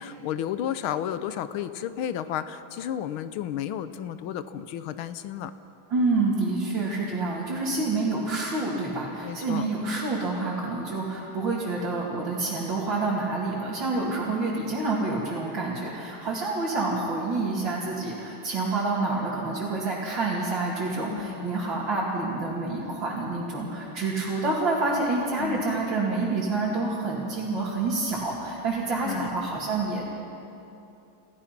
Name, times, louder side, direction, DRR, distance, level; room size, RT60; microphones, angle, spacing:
voice 1, 0.0-5.5 9.2-9.6 21.1-21.5 25.4-25.7 29.0-29.3, left 10 dB, 85° left, 12 dB, 1.6 m, -32 dB
voice 2, 5.9-30.1, right 3 dB, 65° right, -7 dB, 3.3 m, -28 dB
29.0 x 15.5 x 6.0 m, 2.8 s
omnidirectional pair, 2.2 m